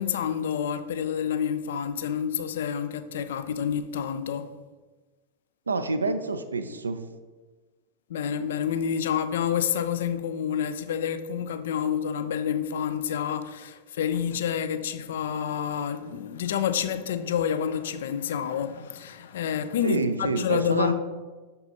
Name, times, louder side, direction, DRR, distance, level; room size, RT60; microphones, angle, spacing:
voice 1, 0.0-4.5 8.1-20.9, left 8 dB, 60° left, 0.4 m, -28 dB
voice 2, 5.7-7.0 19.8-20.9, right 3 dB, 75° right, 0.4 m, -27 dB
6.7 x 5.3 x 2.8 m
figure-of-eight pair, 90°, 0 cm